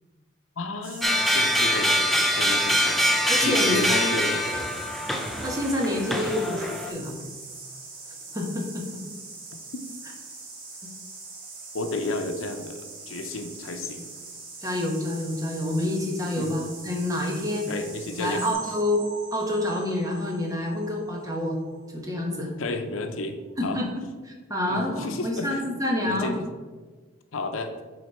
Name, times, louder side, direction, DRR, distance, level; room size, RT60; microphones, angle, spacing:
voice 1, 0.6-4.4 11.7-14.1 16.4-16.6 17.7-18.4 22.6-23.8 24.7-25.6 26.1-26.5 27.3-27.7, left 2 dB, 85° left, 7 dB, 0.7 m, -32 dB
sound 1, 0.8-18.5, right 3 dB, 45° right, 1.3 m, -42 dB
sound 2, 1.0-6.9, equal, ahead, 0.4 m, -24 dB
voice 2, 3.3-4.1 5.4-7.2 8.3-9.0 14.6-17.7 18.1-19.0 19.3-21.6 21.9-22.5 23.6-23.9 24.2-26.3, left 1 dB, 15° right, 0 dB, 0.9 m, -28 dB
sound 3, 18.4-22.0 22.4-22.6 22.9-23.0 23.5-23.6, right 3 dB, 75° right, 1.2 m, -42 dB
6.3 x 4.0 x 4.4 m, 1.3 s
head